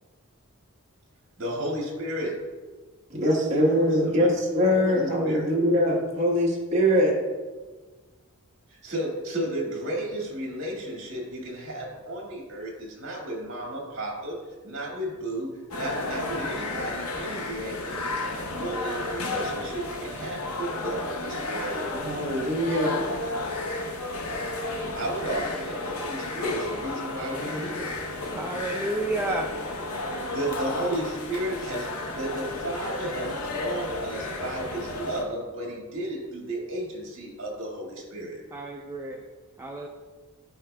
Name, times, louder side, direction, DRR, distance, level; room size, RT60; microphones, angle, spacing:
voice 1, 1.4-2.3 4.0-4.3 4.8-5.5 8.7-14.4 14.6-21.9 24.9-27.9 30.3-38.4, right 1 dB, 60° right, -2 dB, 1.9 m, -33 dB
voice 2, 3.1-7.1 21.9-23.0, equal, 30° right, -4 dB, 1.3 m, -23 dB
sound 1, 15.7-35.2, left 2 dB, 90° left, 0.9 m, -32 dB
voice 3, 28.3-29.5 38.5-39.2 39.6-39.9, right 1 dB, 10° right, -1 dB, 0.3 m, -30 dB
11.0 x 4.8 x 2.3 m, 1.3 s
head